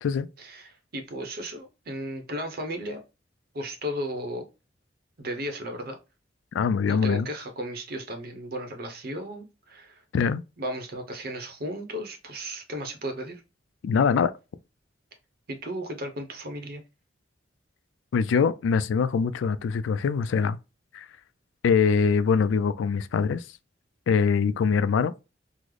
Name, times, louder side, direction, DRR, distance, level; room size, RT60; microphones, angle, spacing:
voice 1, 0.4-3.0 3.5-4.5 5.2-6.0 6.9-10.0 10.6-13.4 15.5-16.8, equal, 55° right, 0.8 m, -35 dB
voice 2, 6.5-7.3 10.1-10.4 13.8-14.3 18.1-20.6 20.9-21.1 21.6-23.5 24.1-25.1, left 6 dB, 80° left, 0.3 m, -23 dB
3.7 x 2.0 x 3.1 m
head